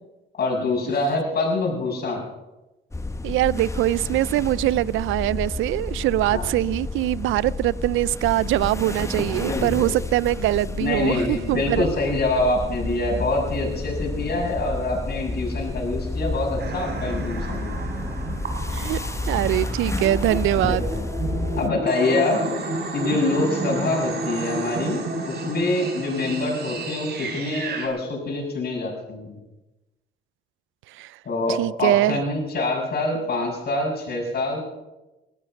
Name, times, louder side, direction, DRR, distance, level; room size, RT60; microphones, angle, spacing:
voice 1, 0.3-2.2 6.3-6.4 9.4-10.0 10.8-17.8 20.6-21.1 21.6-29.4 31.2-34.6, left 2 dB, 50° left, 6.3 m, -25 dB
sound 1, 2.9-21.7, left 2 dB, 15° left, 1.2 m, -30 dB
voice 2, 3.2-11.9 18.7-19.0 19.3-20.9 31.0-31.1 31.6-32.2, right 15 dB, 85° right, 0.5 m, -23 dB
sound 2, 16.6-27.9, right 3 dB, 55° right, 3.9 m, -31 dB
19.0 x 14.0 x 5.3 m
cardioid pair, 90°, 20 cm